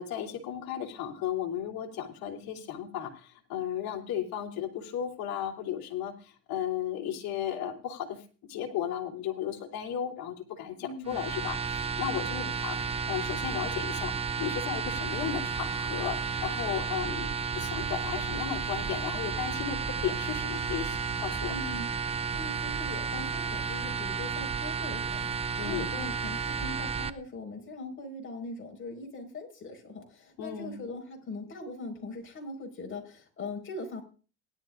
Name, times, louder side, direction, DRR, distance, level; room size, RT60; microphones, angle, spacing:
voice 1, 0.0-8.2 8.5-12.8 13.1-21.5 25.6-25.9 30.4-30.8, left 9 dB, 55° left, 1 dB, 3.2 m, -35 dB
voice 2, 10.8-11.2 12.3-12.5 21.5-21.9 22.3-34.0, left 2 dB, 30° left, 1 dB, 5.1 m, -41 dB
sound 1, 11.1-27.1, right 5 dB, 15° right, 0.6 m, -32 dB
18.5 x 11.5 x 2.5 m, 0.37 s
supercardioid pair, 105°, 41 cm